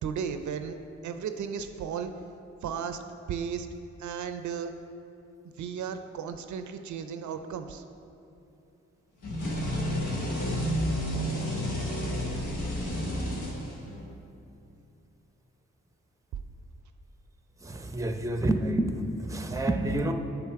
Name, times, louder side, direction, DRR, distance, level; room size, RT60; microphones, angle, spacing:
voice 1, 0.0-0.8 1.0-2.1 2.6-3.0 3.3-3.7 4.0-4.7 5.6-7.8, right 7 dB, 70° right, 8 dB, 0.5 m, -34 dB
sound 1, 9.2-14.1, equal, 75° left, 1.3 m, -30 dB
voice 2, 17.6-20.1, right 1 dB, 10° right, 6 dB, 0.6 m, -28 dB
6.9 x 5.9 x 4.5 m, 2.7 s
supercardioid pair, 45°, 30 cm